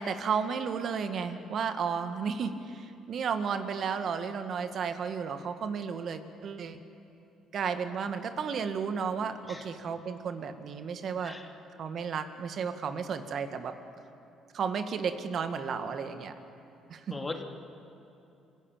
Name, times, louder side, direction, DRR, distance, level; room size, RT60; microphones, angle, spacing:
voice 1, 0.0-6.8 7.5-11.4 11.8-13.7 14.5-16.3 16.9-17.2, right 6 dB, 60° right, 8 dB, 1.9 m, -33 dB
voice 2, 17.1-17.4, left 3 dB, 25° left, 2 dB, 3.2 m, -37 dB
27.5 x 16.0 x 9.1 m, 2.8 s
hypercardioid pair, 60°, 0 cm